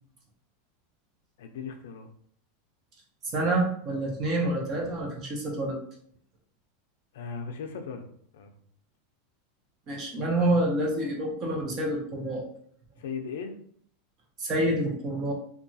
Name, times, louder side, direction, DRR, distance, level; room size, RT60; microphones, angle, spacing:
voice 1, 1.4-2.1 7.1-8.1 8.3-8.5 13.0-13.6, left 5 dB, 80° left, 5 dB, 0.4 m, -37 dB
voice 2, 3.2-5.8 9.9-12.5 14.4-15.3, right 1 dB, 25° right, -1 dB, 0.6 m, -27 dB
2.8 x 2.2 x 2.6 m, 0.62 s
supercardioid pair, 175°, 0 cm